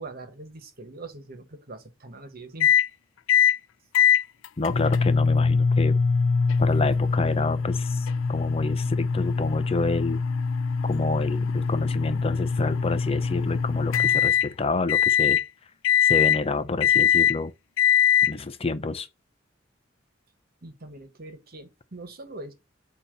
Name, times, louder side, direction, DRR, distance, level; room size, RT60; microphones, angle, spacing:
voice 1, 0.0-2.7 20.6-22.5, right 2 dB, 50° right, 1.4 m, -42 dB
sound 1, 2.6-2.9 3.3-3.6 3.9-14.5 14.9-15.4 15.8-16.4 16.8-17.4 17.8-18.3, left 7 dB, 80° left, 0.3 m, -22 dB
voice 2, 4.6-6.0 6.6-10.2 10.8-15.4 16.0-17.5 18.2-19.1, left 3 dB, 30° left, 0.5 m, -28 dB
8.4 x 2.9 x 5.3 m
head